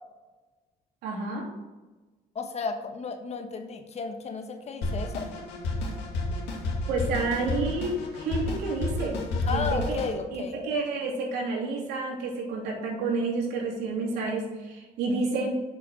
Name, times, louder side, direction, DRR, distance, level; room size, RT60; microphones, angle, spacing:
voice 1, 1.0-1.5 6.9-9.2 9.5-10.0 10.3-15.5, right 3 dB, 85° right, -4 dB, 3.0 m, -30 dB
voice 2, 2.3-5.3 9.5-10.6, left 5 dB, 40° left, 6 dB, 1.2 m, -33 dB
Drum kit, 4.8-10.1, left 2 dB, 85° left, 2.5 m, -30 dB
7.6 x 4.9 x 6.3 m, 1.2 s
cardioid pair, 110°, 17 cm